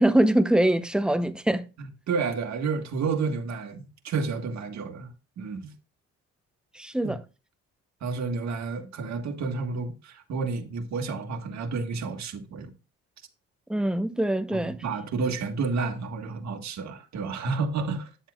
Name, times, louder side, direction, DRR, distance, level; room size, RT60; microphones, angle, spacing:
voice 1, 0.0-1.6 6.7-7.2 13.7-14.8, right 1 dB, 5° right, 0.8 m, -23 dB
voice 2, 1.8-5.1 5.4-5.7 7.0-7.1 8.0-12.7 14.5-18.1, right 4 dB, 65° right, 1.7 m, -30 dB
10.0 x 7.3 x 2.4 m
cardioid pair, 90°, 30 cm